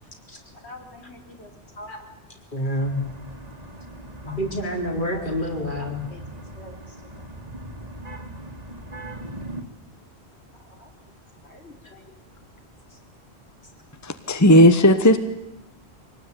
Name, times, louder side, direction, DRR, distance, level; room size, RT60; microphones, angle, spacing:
voice 1, 0.5-1.9 4.2-4.4 5.1-5.2 5.8-7.2 10.6-10.9 11.4-12.2, left 1 dB, 75° left, 3 dB, 3.8 m, -46 dB
voice 2, 2.5-3.0 4.2-6.0 11.8-11.9, equal, 45° left, 2 dB, 4.2 m, -27 dB
sound 1, 2.8-9.6, right 1 dB, 35° right, 2.1 m, -40 dB
voice 3, 14.0-15.2, equal, 15° left, 10 dB, 1.1 m, -14 dB
24.5 x 19.0 x 9.6 m, 0.97 s
omnidirectional pair, 1.1 m